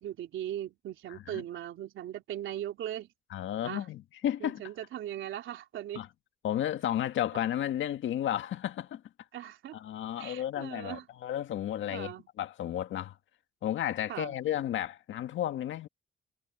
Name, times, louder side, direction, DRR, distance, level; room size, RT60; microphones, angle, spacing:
voice 1, 0.0-3.1 3.6-3.9 4.4-6.1 7.3-7.4 9.3-9.8 10.2-11.1 11.9-12.3 14.1-14.3, right 11 dB, 80° right, 3.2 m, -39 dB
voice 2, 1.1-1.4 3.3-4.6 6.0-6.1 6.4-9.0 9.7-13.2 13.6-15.9, left 11 dB, 75° left, 1.8 m, -33 dB
cardioid pair, 90°, 20 cm